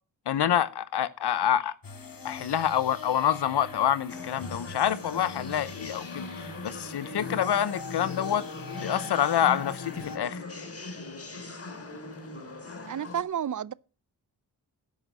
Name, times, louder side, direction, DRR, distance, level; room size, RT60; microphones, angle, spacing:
voice 1, 0.3-1.7 2.2-8.4 8.8-10.4, left 10 dB, 70° left, 0.7 m, -27 dB
sound 1, 1.8-10.2, left 4 dB, 55° left, 2.0 m, -41 dB
sound 2, 4.1-13.2, left 2 dB, 35° left, 2.6 m, -41 dB
voice 2, 12.9-13.7, right 9 dB, 45° right, 0.5 m, -31 dB
13.5 x 5.5 x 6.1 m
cardioid pair, 40°, 41 cm